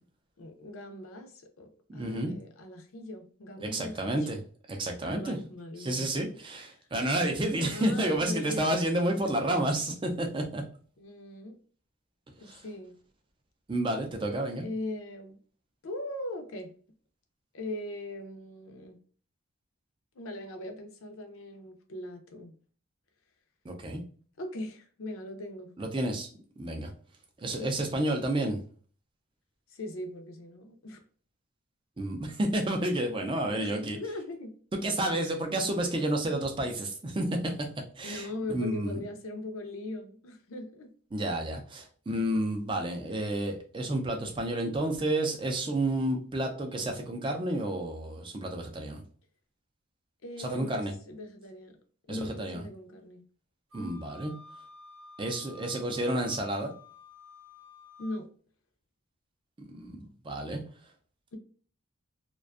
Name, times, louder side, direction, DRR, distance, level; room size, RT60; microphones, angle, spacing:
voice 1, 0.4-4.3 5.0-6.1 6.7-6.9 7.6-8.8 11.0-11.6 12.4-12.9 14.6-15.4 15.8-16.7 17.5-19.0 20.1-22.5 24.4-25.8 27.6-27.8 29.7-31.0 33.5-34.5 35.1-35.4 38.0-40.9 50.2-51.8 52.1-53.2 53.7-54.0 58.0-58.3, left 1 dB, 70° left, 0.5 m, -40 dB
voice 2, 1.9-2.3 3.6-4.4 4.7-5.4 5.8-10.6 12.4-12.6 13.7-14.7 23.6-24.0 25.8-26.3 26.6-26.9 27.4-28.6 32.0-34.0 34.7-37.5 38.0-39.0 41.1-49.0 50.4-50.9 52.1-52.6 53.7-54.3 55.2-56.7 59.7-60.6, right 1 dB, 25° right, 0.4 m, -30 dB
Wind instrument woodwind instrument, 53.7-58.2, left 4 dB, 65° right, 0.7 m, -52 dB
2.5 x 2.2 x 2.3 m
head